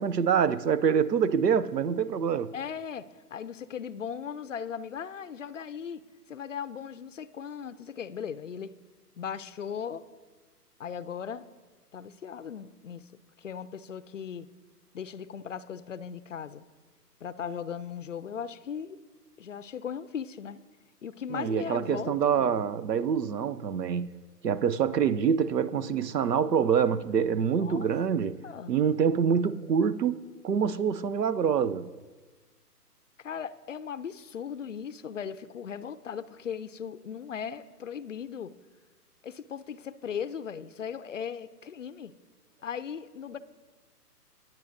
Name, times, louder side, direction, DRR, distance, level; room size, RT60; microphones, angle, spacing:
voice 1, 0.0-2.5 21.3-24.1 24.4-28.4 28.7-31.9, right 7 dB, 80° right, 0.7 m, -26 dB
voice 2, 2.5-3.0 3.3-6.0 6.3-8.7 9.2-10.0 10.8-11.4 11.9-13.0 13.4-14.5 14.9-16.6 17.2-19.0 19.4-20.6 21.0-22.6 27.6-27.9 28.4-28.7 33.2-38.5 39.2-42.1 42.6-43.4, left 7 dB, 50° left, 0.5 m, -38 dB
20.0 x 8.9 x 2.6 m
figure-of-eight pair, 140°, 48 cm